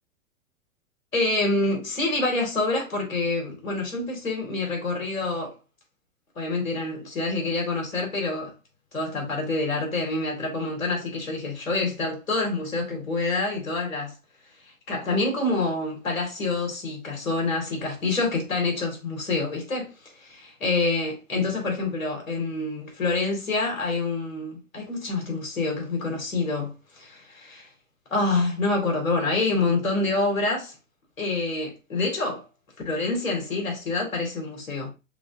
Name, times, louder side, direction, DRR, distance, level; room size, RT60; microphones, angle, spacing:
voice 1, 1.1-5.5 6.4-8.5 8.9-14.1 14.9-19.9 20.2-27.7 28.1-30.7 31.2-32.4 32.8-34.9, left 3 dB, 70° left, 2.5 m, -27 dB
4.9 x 4.0 x 2.6 m
figure-of-eight pair, 110°, 41 cm